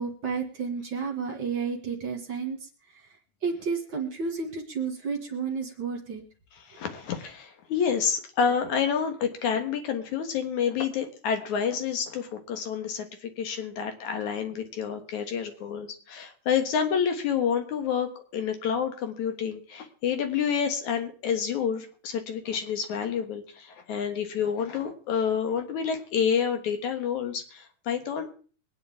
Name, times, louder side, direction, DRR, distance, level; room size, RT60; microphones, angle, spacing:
voice 1, 0.0-3.1 3.4-6.2, right 5 dB, 45° right, 1 dB, 2.2 m, -31 dB
voice 2, 6.7-28.3, left 7 dB, 70° left, 6 dB, 2.8 m, -28 dB
23.0 x 9.5 x 3.6 m, 0.40 s
omnidirectional pair, 3.6 m